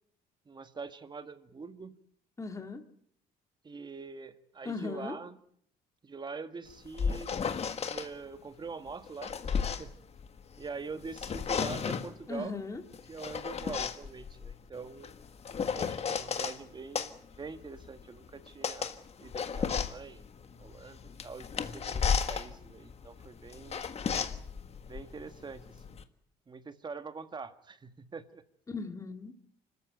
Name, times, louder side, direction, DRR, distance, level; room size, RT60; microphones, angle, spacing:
voice 1, 0.4-2.0 3.6-5.4 6.0-7.3 7.9-9.9 10.6-12.5 13.1-15.1 15.7-20.3 20.6-23.8 24.8-26.0 26.5-28.4, right 4 dB, 25° right, 10 dB, 1.7 m, -44 dB
voice 2, 2.4-2.8 4.6-5.2 12.3-12.8 28.7-29.3, left 4 dB, 20° left, 6 dB, 2.1 m, -38 dB
sound 1, 6.7-8.1 8.9-10.7 11.0-12.2 12.9-16.6 16.9-26.0, left 6 dB, 40° left, 1.6 m, -34 dB
25.5 x 14.0 x 9.3 m, 0.68 s
cardioid pair, 110°, 17 cm